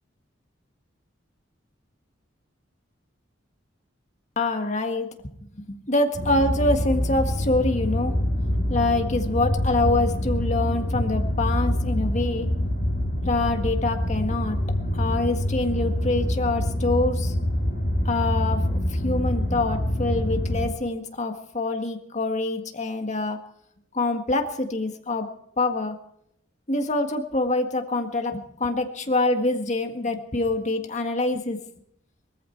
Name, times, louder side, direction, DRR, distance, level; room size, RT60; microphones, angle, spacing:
voice 1, 4.3-5.3 5.7-8.2 8.7-12.5 13.2-14.6 14.9-17.3 18.0-23.4 23.9-25.3 25.6-26.0 26.7-31.6, left 2 dB, 40° left, 5 dB, 1.7 m, -25 dB
sound 1, 6.1-20.7, left 1 dB, 55° left, 6.2 m, -25 dB
20.5 x 14.0 x 4.6 m, 0.72 s
head